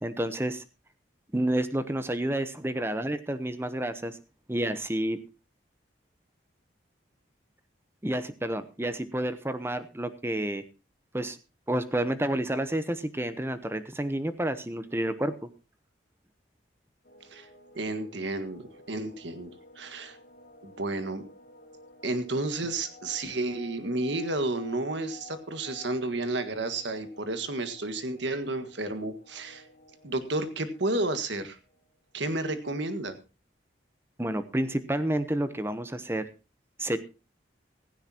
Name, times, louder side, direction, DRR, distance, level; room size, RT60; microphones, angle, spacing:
voice 1, 0.0-0.6 1.3-4.2 4.5-5.2 8.0-10.6 11.1-11.4 11.7-15.5 34.2-36.2 36.8-37.0, right 1 dB, 15° right, 12 dB, 0.8 m, -30 dB
sound 1, 17.0-32.2, left 1 dB, 50° left, 3.2 m, -53 dB
voice 2, 17.7-19.5 19.8-20.2 20.6-21.2 22.0-29.6 30.0-31.6 32.1-33.1, right 2 dB, 75° right, 9 dB, 1.7 m, -31 dB
16.5 x 15.0 x 2.9 m, 0.30 s
head